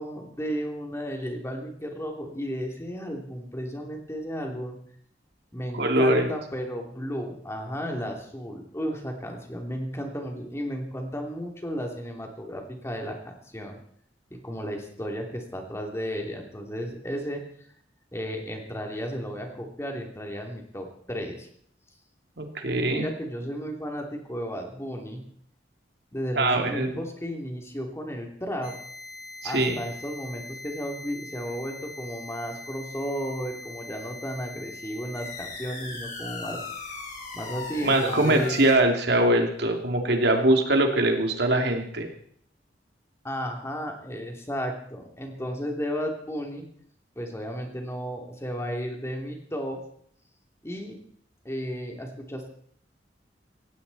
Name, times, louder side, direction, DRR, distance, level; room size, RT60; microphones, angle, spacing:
voice 1, 0.0-4.8 5.5-13.8 14.3-17.4 18.1-21.5 22.9-25.3 26.1-28.8 29.4-36.6 37.3-38.6 40.3-40.5 43.2-46.6 47.1-49.8 50.6-51.0 51.4-52.5, equal, 15° left, 2 dB, 3.0 m, -34 dB
voice 2, 5.7-6.3 22.4-23.1 26.4-27.0 29.4-29.8 37.8-42.1, right 1 dB, 70° right, 3 dB, 2.7 m, -22 dB
sound 1, 28.6-38.7, left 3 dB, 50° left, 4.2 m, -40 dB
17.5 x 16.5 x 4.2 m, 0.62 s
head